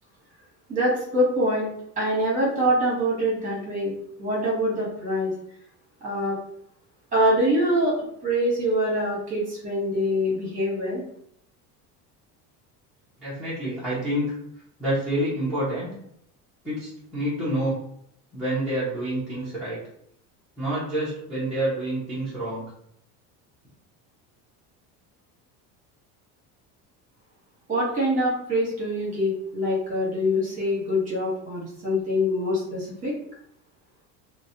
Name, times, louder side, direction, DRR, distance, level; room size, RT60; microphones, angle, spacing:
voice 1, 0.7-3.9 4.2-5.3 6.0-6.4 7.1-11.0 27.7-33.1, equal, 20° right, -4 dB, 0.8 m, -24 dB
voice 2, 13.2-14.4 14.8-15.9 16.6-17.8 18.3-19.8 20.6-22.7, right 1 dB, ahead, -12 dB, 0.3 m, -28 dB
2.6 x 2.0 x 2.5 m, 0.71 s
cardioid pair, 175°, 39 cm